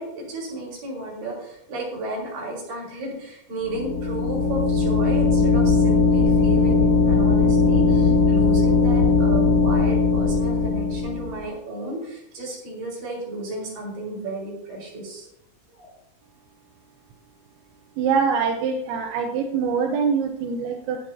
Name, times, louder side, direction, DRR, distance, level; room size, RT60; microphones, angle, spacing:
voice 1, 0.0-15.3 15.7-15.9, right 1 dB, 45° right, -3 dB, 6.0 m, -33 dB
sound 1, 3.6-11.4, left 4 dB, 55° left, 1.8 m, -19 dB
voice 2, 18.0-21.0, right 6 dB, 80° right, 2 dB, 3.6 m, -24 dB
17.5 x 11.0 x 2.8 m, 0.78 s
omnidirectional pair, 5.9 m